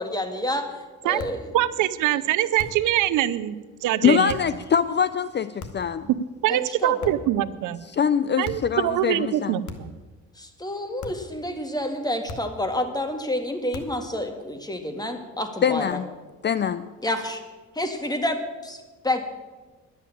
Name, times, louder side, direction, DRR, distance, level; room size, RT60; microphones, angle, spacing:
voice 1, 0.0-0.7 1.0-1.5 6.5-7.1 10.4-15.9 17.0-17.4 17.8-19.2, left 1 dB, 15° left, 6 dB, 1.8 m, -29 dB
sound 1, 1.2-1.5 2.6-2.9 4.3-4.6 5.6-6.0 7.0-7.4 8.4-8.8 9.6-10.1 11.0-11.3 12.3-12.7 13.7-14.1, left 4 dB, 75° left, 1.5 m, -39 dB
voice 2, 1.5-3.5 3.8-4.4 6.4-7.8 8.4-9.9, right 13 dB, 85° right, 16 dB, 0.6 m, -23 dB
voice 3, 4.0-6.1 7.9-9.5 15.6-16.1 16.4-16.9, left 7 dB, 35° left, 14 dB, 0.5 m, -23 dB
11.5 x 8.6 x 8.6 m, 1.3 s
cardioid pair, 90°, 30 cm